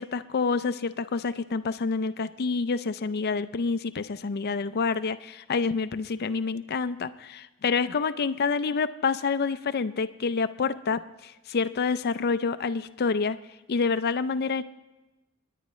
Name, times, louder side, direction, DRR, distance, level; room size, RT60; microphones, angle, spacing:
voice 1, 0.0-13.4 13.7-14.6, left 4 dB, 50° left, 12 dB, 0.5 m, -28 dB
30.0 x 10.0 x 3.1 m, 1.1 s
head